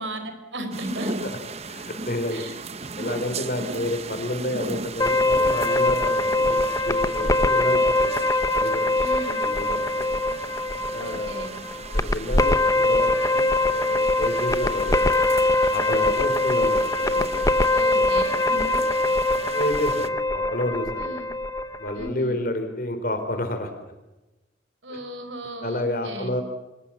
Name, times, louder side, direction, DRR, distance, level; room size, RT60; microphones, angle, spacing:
voice 1, 0.0-1.3 2.3-2.6 3.6-3.9 9.0-9.5 11.0-11.5 17.7-18.9 21.0-21.3 21.9-22.4 24.8-26.4, right 1 dB, 80° right, 9 dB, 4.6 m, -35 dB
sound 1, 0.7-20.1, right 4 dB, 35° right, 1.0 m, -37 dB
voice 2, 1.6-2.4 3.0-6.3 6.6-8.3 8.5-8.9 9.3-10.2 10.9-11.3 11.9-15.3 15.7-18.0 18.4-18.6 19.5-21.1 21.8-23.7 24.9-25.0 25.6-26.4, left 1 dB, 45° left, 6 dB, 3.9 m, -30 dB
sound 2, 5.0-22.1, left 2 dB, 20° left, 0.8 m, -22 dB
24.5 x 21.5 x 7.2 m, 1.0 s
head